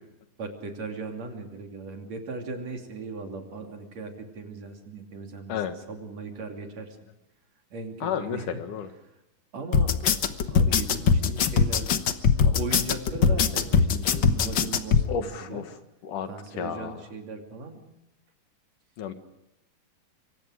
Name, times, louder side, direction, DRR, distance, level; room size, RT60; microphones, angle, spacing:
voice 1, 0.4-7.0 7.7-8.6 9.5-10.0 10.5-11.9 12.4-15.6 16.3-17.8, right 3 dB, 50° right, 3 dB, 3.9 m, -38 dB
voice 2, 8.0-8.9 15.1-15.6 16.0-16.3 16.6-16.9 19.0-19.1, left 7 dB, 70° left, 7 dB, 3.1 m, -31 dB
sound 1, 9.7-15.0, left 6 dB, 90° left, 1.0 m, -21 dB
26.5 x 25.0 x 5.0 m, 0.89 s
omnidirectional pair, 3.9 m